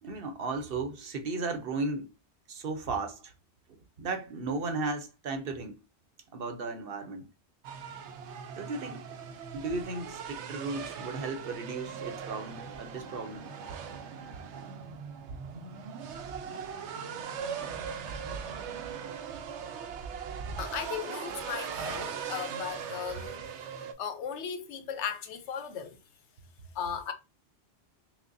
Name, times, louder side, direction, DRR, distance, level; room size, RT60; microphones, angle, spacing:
voice 1, 0.0-2.1 2.5-3.3 3.7-5.8 6.3-7.3 8.6-9.2 9.5-13.5, right 3 dB, 60° right, 0.8 m, -35 dB
sound 1, 7.6-23.9, right 7 dB, 85° right, 0.9 m, -39 dB
voice 2, 20.6-23.5 24.0-26.0 26.7-27.1, left 7 dB, 85° left, 1.0 m, -36 dB
5.9 x 2.1 x 2.5 m
omnidirectional pair, 1.1 m